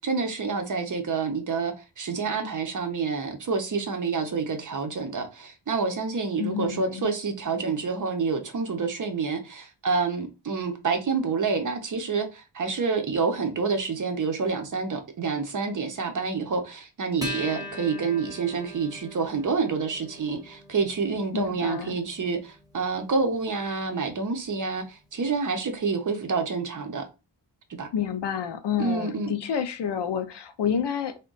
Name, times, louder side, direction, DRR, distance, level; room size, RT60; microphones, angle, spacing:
voice 1, 0.0-27.0 27.7-27.9 28.8-29.3, right 4 dB, 40° right, 0.6 m, -28 dB
voice 2, 6.4-7.1 21.3-22.0 27.9-31.2, left 8 dB, 60° left, 0.6 m, -29 dB
Acoustic guitar, 17.2-24.0, left 1 dB, 10° right, 0.7 m, -41 dB
3.5 x 2.2 x 3.8 m
wide cardioid pair, 155°, 47 cm